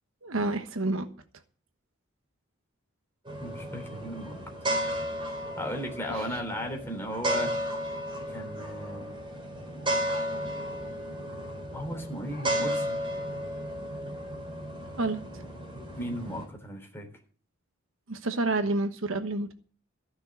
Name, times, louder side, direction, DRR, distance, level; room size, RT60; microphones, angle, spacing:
voice 1, 0.2-1.1 6.1-6.2 15.0-15.2 18.1-19.5, right 2 dB, 70° right, 1.2 m, -29 dB
sound 1, 3.2-16.4, equal, 25° right, 4.5 m, -34 dB
voice 2, 3.4-4.4 5.6-7.5 8.3-9.1 11.7-13.0 16.0-17.1, equal, 10° left, 3.6 m, -36 dB
15.0 x 6.4 x 8.0 m
head